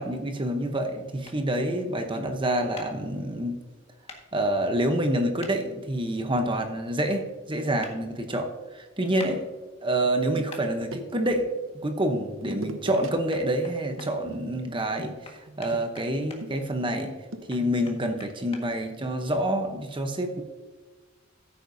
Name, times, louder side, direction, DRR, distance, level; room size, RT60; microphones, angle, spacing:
voice 1, 0.0-3.6 4.3-9.5 9.8-17.2 17.5-20.4, right 1 dB, 25° right, 5 dB, 0.9 m, -27 dB
sound 1, 1.2-1.4 2.7-2.9 4.1-4.2 5.4-5.5 7.8-7.9 9.2-9.3 10.5-10.6 12.9-13.0 13.3-14.1 15.2-16.4 17.5-18.6, left 3 dB, 30° left, 1.7 m, -43 dB
sound 2, 10.0-11.4 12.4-13.1 13.4-13.6 14.0-18.0, right 1 dB, 75° right, 1.0 m, -41 dB
14.5 x 8.8 x 2.7 m, 1.3 s
head